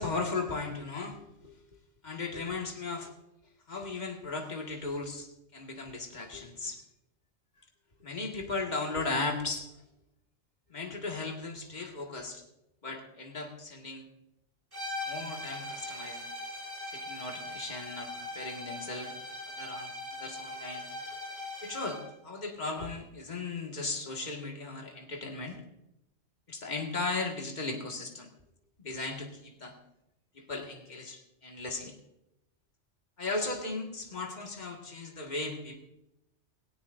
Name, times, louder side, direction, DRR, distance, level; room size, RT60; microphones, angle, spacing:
voice 1, 0.0-1.5 2.0-3.1 3.7-6.8 8.0-9.7 10.7-12.4 12.8-14.1 15.1-16.3 16.9-19.1 19.5-19.9 20.2-20.9 21.6-25.6 26.5-28.3 28.8-29.7 30.4-31.9 33.2-35.8, left 3 dB, 40° left, 1 dB, 2.0 m, -36 dB
sound 1, 14.7-22.1, left 1 dB, 20° right, 2.5 m, -40 dB
17.5 x 17.0 x 2.6 m, 0.87 s
omnidirectional pair, 1.2 m